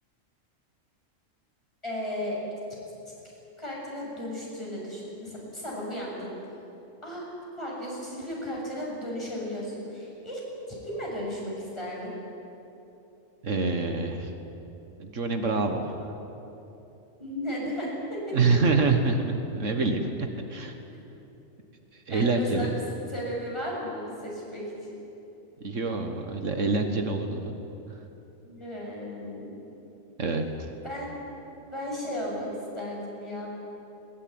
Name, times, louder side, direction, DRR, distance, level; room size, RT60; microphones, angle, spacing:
voice 1, 1.8-2.4 3.6-6.3 7.0-7.3 7.6-10.4 10.7-12.1 17.2-18.4 22.1-22.8 23.1-25.0 28.4-29.5 30.8-31.1 31.7-32.5 32.7-33.5, equal, 20° left, -4 dB, 7.2 m, -35 dB
voice 2, 13.4-14.3 15.0-16.1 18.3-20.8 21.9-22.8 25.6-27.5 27.9-28.0 30.2-30.7, right 3 dB, 70° right, 6 dB, 1.8 m, -26 dB
21.0 x 19.5 x 9.5 m, 3.0 s
omnidirectional pair, 1.3 m